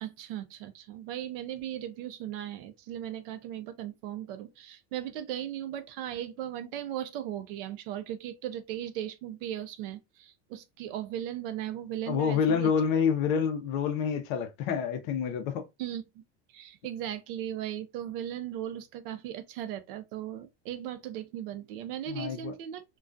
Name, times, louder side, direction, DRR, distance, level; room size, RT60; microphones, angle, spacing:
voice 1, 0.0-12.7 15.8-16.0 16.5-22.8, right 11 dB, 55° right, 0.5 m, -37 dB
voice 2, 12.1-15.6 22.1-22.5, left 7 dB, 50° left, 0.5 m, -28 dB
2.3 x 2.2 x 2.4 m
supercardioid pair, 165°, 33 cm